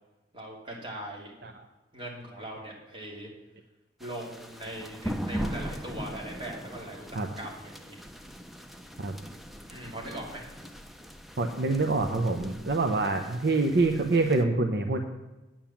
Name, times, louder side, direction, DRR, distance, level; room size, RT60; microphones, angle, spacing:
voice 1, 0.3-1.3 1.9-3.3 4.0-8.0 9.7-10.5, right 1 dB, 30° right, -2 dB, 2.9 m, -40 dB
sound 1, 4.0-14.4, equal, ahead, 0.7 m, -40 dB
voice 2, 11.4-15.0, right 3 dB, 65° right, 6 dB, 0.8 m, -26 dB
9.0 x 8.9 x 7.2 m, 1.1 s
head